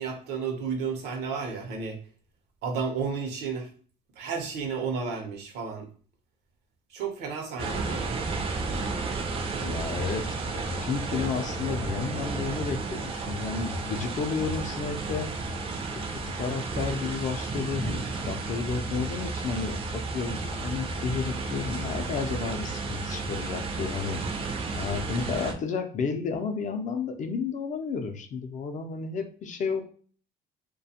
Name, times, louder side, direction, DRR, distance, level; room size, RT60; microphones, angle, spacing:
voice 1, 0.0-2.0 2.6-3.7 4.2-5.9 6.9-8.2, right 5 dB, 80° right, 4 dB, 0.7 m, -32 dB
sound 1, 7.6-25.5, right 3 dB, 35° right, 0.4 m, -32 dB
voice 2, 9.6-15.3 16.1-24.2 24.7-29.8, left 5 dB, 45° left, 6 dB, 0.5 m, -32 dB
2.4 x 2.2 x 2.7 m, 0.43 s
cardioid pair, 110°, 17 cm